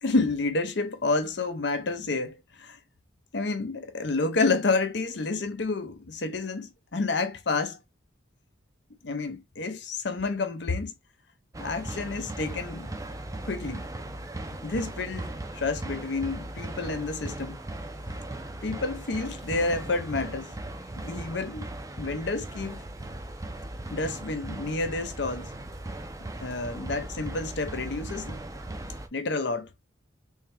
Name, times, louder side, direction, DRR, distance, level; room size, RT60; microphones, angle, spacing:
voice 1, 0.0-2.8 3.3-7.8 9.0-10.9 11.6-12.9 13.4-13.9 14.6-17.6 18.6-20.5 21.0-21.7 22.0-22.8 23.9-25.5 26.4-28.4 29.1-29.7, left 3 dB, 60° left, 0.7 m, -29 dB
sound 1, 11.5-29.1, right 1 dB, 15° right, 0.5 m, -38 dB
3.6 x 3.2 x 3.3 m
head